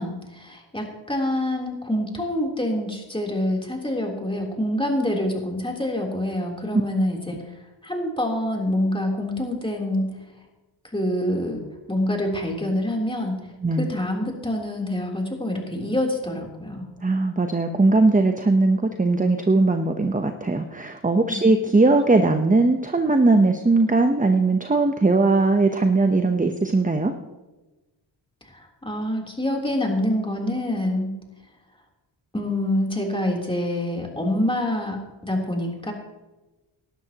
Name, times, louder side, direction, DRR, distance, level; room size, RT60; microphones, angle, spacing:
voice 1, 0.0-7.4 7.8-10.2 10.9-13.4 13.7-16.9 21.3-21.5 28.5-31.2 32.3-35.9, left 1 dB, 10° left, 0 dB, 3.5 m, -26 dB
voice 2, 17.0-27.1, right 3 dB, 15° right, 6 dB, 0.9 m, -19 dB
18.5 x 12.0 x 3.0 m, 1.1 s
cardioid pair, 60°, 48 cm